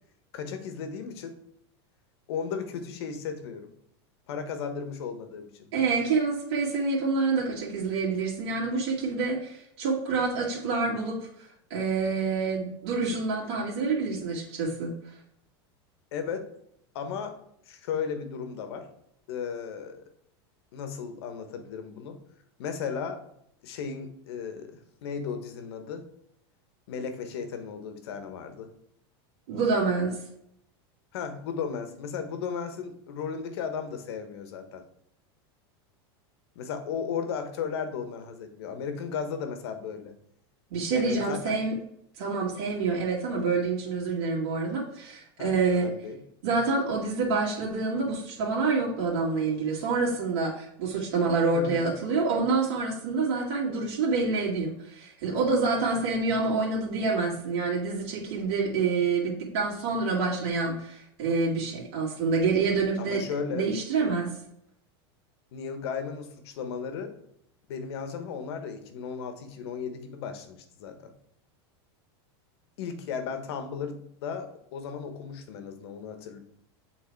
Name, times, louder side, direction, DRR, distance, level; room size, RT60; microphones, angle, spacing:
voice 1, 0.3-1.4 2.3-3.7 4.3-5.7 16.1-16.5 16.9-17.3 17.7-18.9 19.3-20.0 20.7-22.2 22.6-23.2 23.6-26.1 26.9-28.7 31.1-34.8 36.5-40.1 40.9-41.6 45.4-46.2 51.5-51.9 63.0-63.7 65.5-67.1 67.7-71.1 72.8-76.4, left 6 dB, 75° left, 7 dB, 1.2 m, -35 dB
voice 2, 5.7-11.3 11.7-14.9 29.5-30.2 40.7-41.8 42.2-45.9 46.4-63.2 63.5-64.3, right 4 dB, 75° right, -5 dB, 2.3 m, -27 dB
7.5 x 4.0 x 4.6 m, 0.73 s
supercardioid pair, 150°, 14 cm